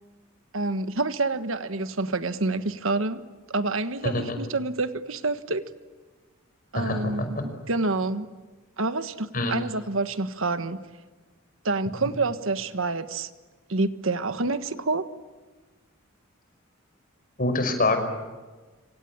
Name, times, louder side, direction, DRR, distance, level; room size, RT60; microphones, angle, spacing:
voice 1, 0.5-3.2 3.5-5.7 6.7-8.3 8.8-10.8 11.6-13.3 13.7-15.1, right 3 dB, 65° right, 11 dB, 1.4 m, -28 dB
voice 2, 6.7-7.1 9.3-9.5 17.4-18.0, left 2 dB, 40° left, 7 dB, 5.8 m, -24 dB
26.5 x 26.0 x 8.7 m, 1.3 s
head